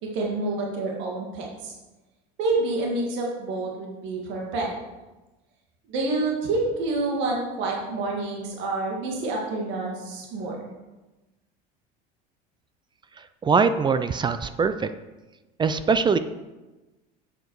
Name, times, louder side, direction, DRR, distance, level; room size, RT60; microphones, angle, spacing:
voice 1, 0.0-1.7 2.4-4.7 5.9-10.6, right 2 dB, 65° right, -2 dB, 2.0 m, -28 dB
voice 2, 13.4-14.9 15.6-16.2, right 5 dB, 20° right, 12 dB, 0.4 m, -22 dB
8.1 x 7.8 x 4.7 m, 1.1 s
supercardioid pair, 120°, 21 cm